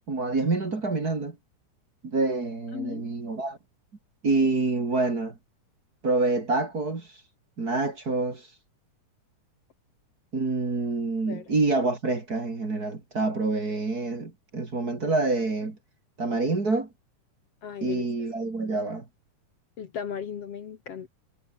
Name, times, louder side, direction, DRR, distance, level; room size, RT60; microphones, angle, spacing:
voice 1, 0.1-1.4 2.0-3.6 4.2-5.3 6.0-7.1 7.6-8.5 10.3-15.8 16.2-16.9 17.8-19.0, right 3 dB, 30° right, 3.1 m, -27 dB
voice 2, 2.7-3.1 11.3-11.5 17.6-18.0 19.8-21.1, left 7 dB, 55° left, 2.4 m, -36 dB
omnidirectional pair, 3.6 m